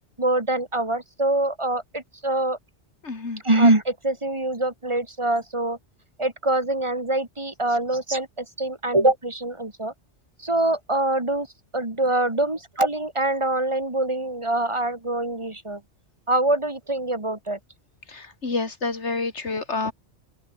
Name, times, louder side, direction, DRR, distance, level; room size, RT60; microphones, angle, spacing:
voice 1, 0.2-2.6 3.4-5.8 6.2-9.9 10.4-11.5 11.7-15.8 16.3-17.6, right 2 dB, 25° right, 2.3 m, -24 dB
voice 2, 3.0-3.4 18.1-19.9, left 3 dB, 80° left, 2.9 m, -28 dB
open air
omnidirectional pair, 1.2 m